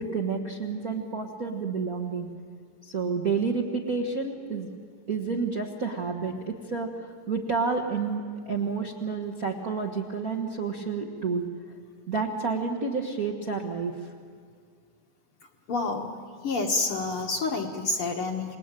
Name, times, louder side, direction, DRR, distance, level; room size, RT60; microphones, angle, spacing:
voice 1, 0.0-2.3 2.8-4.7 5.1-11.5 12.1-13.9, right 4 dB, 40° right, 0 dB, 1.2 m, -30 dB
voice 2, 15.7-16.2 16.4-18.6, left 3 dB, 50° left, 3 dB, 2.0 m, -28 dB
28.0 x 20.5 x 9.1 m, 2.1 s
omnidirectional pair, 3.8 m